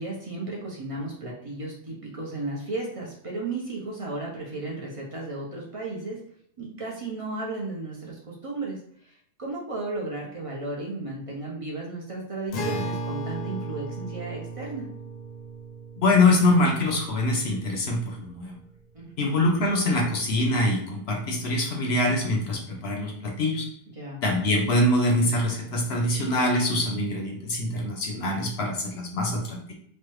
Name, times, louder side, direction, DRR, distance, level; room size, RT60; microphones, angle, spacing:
voice 1, 0.0-6.2 6.6-14.9 18.9-19.5 23.9-24.2, right 2 dB, 45° right, -3 dB, 0.4 m, -34 dB
Acoustic guitar, 12.5-18.0, right 2 dB, 90° left, 1.1 m, -36 dB
voice 2, 16.0-18.6 19.2-23.7 24.2-29.7, left 1 dB, 60° left, 1 dB, 0.8 m, -24 dB
3.2 x 2.1 x 3.0 m, 0.67 s
omnidirectional pair, 1.3 m